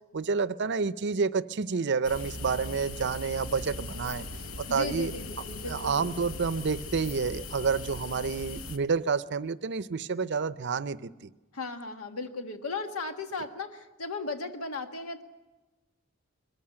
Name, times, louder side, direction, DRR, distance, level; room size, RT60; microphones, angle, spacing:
voice 1, 0.1-4.2 4.7-5.1 5.7-11.3, right 5 dB, 55° right, 15 dB, 0.6 m, -29 dB
sound 1, 2.0-8.8, left 2 dB, 70° left, 1.1 m, -39 dB
voice 2, 4.7-6.1 11.5-15.2, left 3 dB, 85° left, 6 dB, 1.6 m, -36 dB
22.5 x 14.5 x 8.7 m, 1.2 s
head